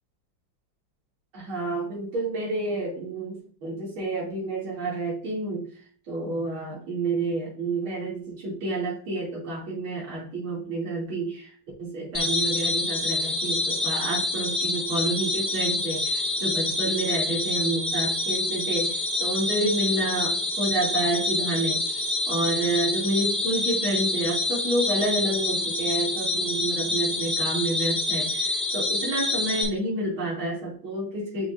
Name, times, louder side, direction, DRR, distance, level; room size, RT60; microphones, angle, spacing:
voice 1, 1.3-5.7 6.1-11.5 11.8-31.5, right 2 dB, 90° right, -5 dB, 3.6 m, -29 dB
sound 1, 12.1-29.6, left 2 dB, 20° left, 2.7 m, -27 dB
6.9 x 6.1 x 2.6 m, 0.44 s
omnidirectional pair, 2.2 m